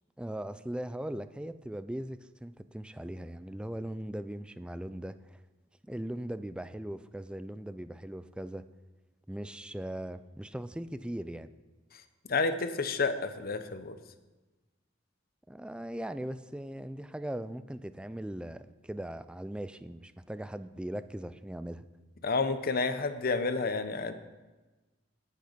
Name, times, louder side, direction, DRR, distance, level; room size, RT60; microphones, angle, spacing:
voice 1, 0.2-5.4 5.9-8.6 9.3-11.5 15.5-21.8, right 1 dB, 5° right, 12 dB, 0.4 m, -39 dB
voice 2, 12.3-14.0 22.2-24.1, left 4 dB, 50° left, 10 dB, 0.8 m, -30 dB
18.0 x 6.6 x 5.1 m, 1.2 s
head